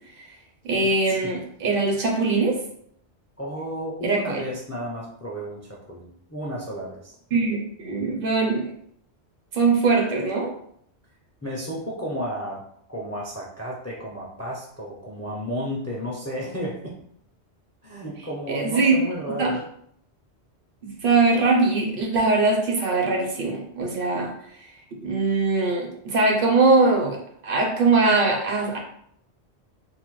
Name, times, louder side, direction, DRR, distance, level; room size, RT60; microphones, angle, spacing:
voice 1, 0.6-2.6 4.0-4.4 7.3-8.7 9.5-10.5 18.5-19.0 19.4-19.5 21.0-24.3 25.0-28.8, right 3 dB, 60° right, 1 dB, 0.7 m, -21 dB
voice 2, 3.4-7.1 11.4-12.6 12.9-16.9 17.8-19.6, equal, 25° left, -4 dB, 0.3 m, -32 dB
3.2 x 2.1 x 3.0 m, 0.68 s
omnidirectional pair, 1.1 m